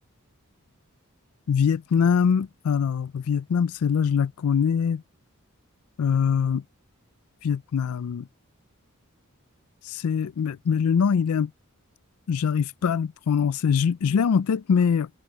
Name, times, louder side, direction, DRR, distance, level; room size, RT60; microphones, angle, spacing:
voice 1, 1.5-5.0 6.0-6.6 7.4-8.3 9.8-11.5 12.3-15.1, left 6 dB, 85° left, 0.4 m, -23 dB
head